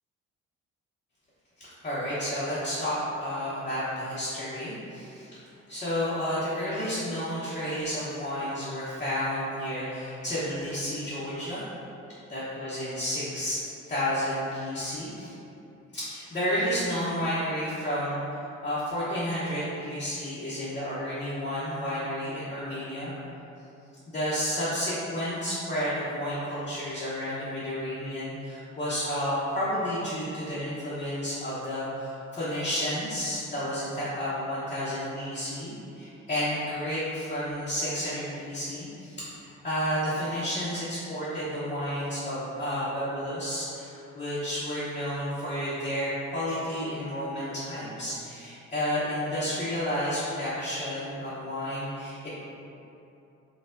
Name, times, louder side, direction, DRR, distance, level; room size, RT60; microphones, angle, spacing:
voice 1, 1.6-5.4 5.7-11.6 12.3-13.6 13.9-15.3 15.9-23.1 24.1-52.3, equal, 25° left, -11 dB, 0.9 m, -31 dB
4.3 x 2.3 x 2.5 m, 2.8 s
cardioid pair, 90°, 30 cm